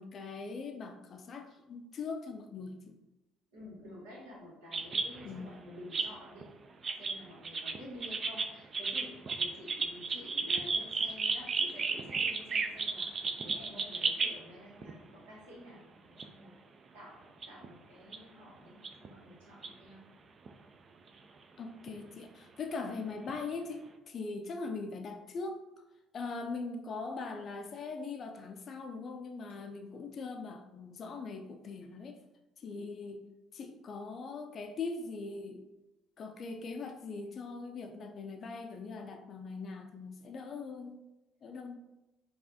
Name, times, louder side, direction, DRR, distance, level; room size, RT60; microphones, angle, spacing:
voice 1, 0.0-2.8 5.2-5.6 21.6-25.6 26.1-32.2 32.6-33.2 33.5-35.7 36.2-41.0 41.4-41.8, left 4 dB, 50° left, 5 dB, 0.4 m, -41 dB
voice 2, 3.5-6.5 7.0-16.5 16.9-20.0, left 1 dB, 80° right, -6 dB, 1.3 m, -51 dB
sound 1, 4.7-5.5 5.9-6.4 6.8-14.4 14.8-14.9 16.2-16.3 17.4-17.7 18.1-18.2 18.8-19.1 19.6-19.7 20.5-20.6 21.9-22.0 23.3-23.4, right 4 dB, 40° right, 0.3 m, -34 dB
4.7 x 2.4 x 2.8 m, 0.98 s
hypercardioid pair, 55°, 0 cm